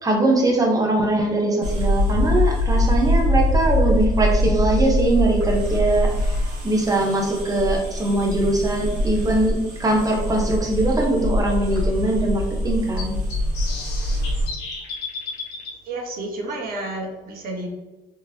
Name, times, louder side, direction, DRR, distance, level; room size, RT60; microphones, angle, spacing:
voice 1, 0.0-6.4 6.6-13.2, right 2 dB, 20° right, 0 dB, 0.9 m, -21 dB
sound 1, 1.6-14.5, left 1 dB, 90° right, 1.4 m, -23 dB
sound 2, 13.0-15.7, left 4 dB, 75° left, 1.1 m, -33 dB
voice 2, 15.8-17.7, right 2 dB, 60° right, 0 dB, 1.1 m, -30 dB
3.6 x 3.0 x 2.8 m, 1.1 s
cardioid pair, 110°, 17 cm